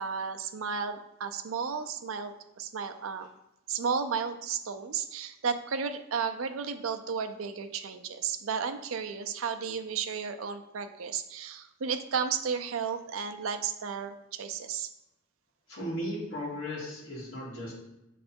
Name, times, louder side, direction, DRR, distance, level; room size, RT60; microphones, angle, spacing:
voice 1, 0.0-3.3 3.7-14.9, right 6 dB, 85° right, 7 dB, 0.5 m, -33 dB
voice 2, 15.7-17.7, equal, 65° left, -7 dB, 1.8 m, -36 dB
7.4 x 3.3 x 4.4 m, 0.89 s
head